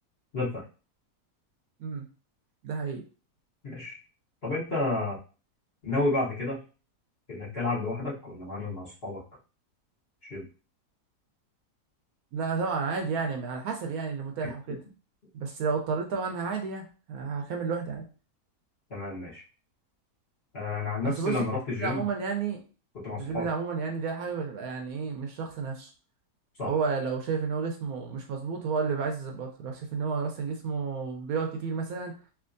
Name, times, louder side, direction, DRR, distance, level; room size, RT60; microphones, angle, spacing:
voice 1, 0.3-0.6 3.6-4.0 4.4-5.2 5.8-6.6 7.3-9.2 10.2-10.4 14.4-14.5 18.9-19.4 20.5-22.0 23.0-23.5 26.6-26.7, left 2 dB, 40° left, -7 dB, 1.2 m, -31 dB
voice 2, 2.6-3.0 12.3-14.8 15.3-18.0 21.0-21.3 21.8-22.6 23.2-25.9 26.6-32.1, right 5 dB, 70° right, 3 dB, 1.0 m, -31 dB
3.4 x 2.8 x 2.5 m, 0.35 s
omnidirectional pair, 1.8 m